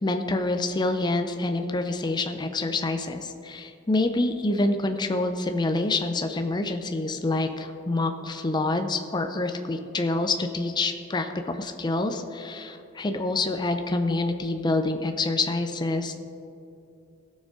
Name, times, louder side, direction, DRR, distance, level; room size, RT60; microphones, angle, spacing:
voice 1, 0.0-16.1, left 2 dB, 20° left, 6 dB, 0.5 m, -27 dB
17.0 x 6.3 x 3.7 m, 2.8 s
head